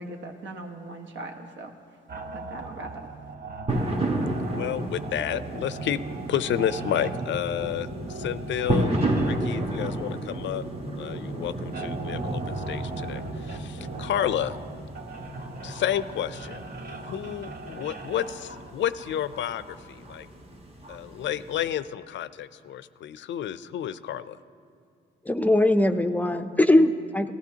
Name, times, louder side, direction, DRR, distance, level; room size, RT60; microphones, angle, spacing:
voice 1, 0.0-1.7 2.2-3.1, right 2 dB, 70° right, 4 dB, 1.2 m, -39 dB
sound 1, 2.1-18.7, right 3 dB, 50° right, 0.9 m, -39 dB
sound 2, 3.7-21.7, right 1 dB, 30° right, 1.3 m, -32 dB
voice 2, 4.5-6.0 6.3-9.0 9.2-10.6 11.0-14.6 15.6-16.6 16.9-20.3 20.9-24.4, left 10 dB, 70° left, 14 dB, 0.5 m, -31 dB
voice 3, 25.3-27.3, left 1 dB, 10° left, 8 dB, 0.5 m, -21 dB
17.5 x 13.5 x 2.8 m, 2.4 s
cardioid pair, 100°, 20 cm